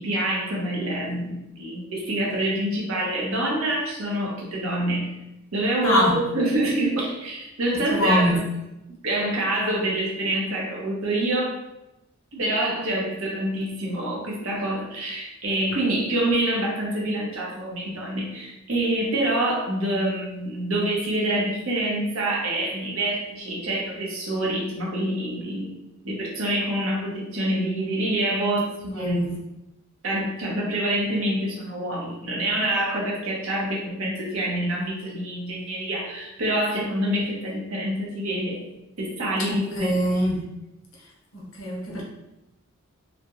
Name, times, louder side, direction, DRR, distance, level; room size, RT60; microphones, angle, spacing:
voice 1, 0.0-5.1 5.5-8.4 9.0-11.5 12.3-29.3 30.0-38.6 39.0-39.9, right 1 dB, 80° right, -2 dB, 0.7 m, -26 dB
voice 2, 5.8-6.2 7.9-8.4 28.9-29.4 39.5-40.4 41.3-42.0, equal, 65° left, -3 dB, 0.7 m, -23 dB
2.3 x 2.1 x 2.9 m, 0.93 s
head